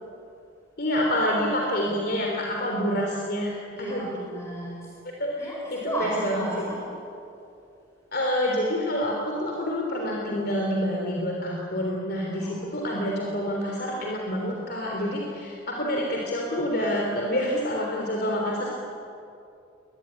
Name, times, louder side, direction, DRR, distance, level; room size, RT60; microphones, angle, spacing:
voice 1, 0.8-4.1 5.2-6.4 8.1-18.7, equal, 50° left, -1 dB, 3.5 m, -27 dB
voice 2, 3.7-4.8 5.4-6.8 12.3-12.6, right 1 dB, 15° left, -3 dB, 5.3 m, -33 dB
23.5 x 20.0 x 9.9 m, 2.6 s
head